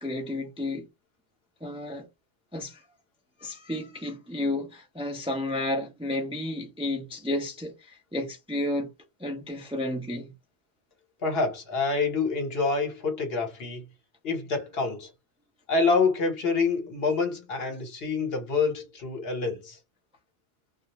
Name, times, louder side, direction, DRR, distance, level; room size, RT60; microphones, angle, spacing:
voice 1, 0.0-0.9 1.6-2.1 2.5-2.8 3.4-8.9 9.2-10.3, left 1 dB, 10° right, 0.4 m, -32 dB
voice 2, 11.2-13.8 14.2-15.1 15.7-19.8, left 4 dB, 70° left, 1.1 m, -27 dB
2.4 x 2.0 x 2.8 m
omnidirectional pair, 1.1 m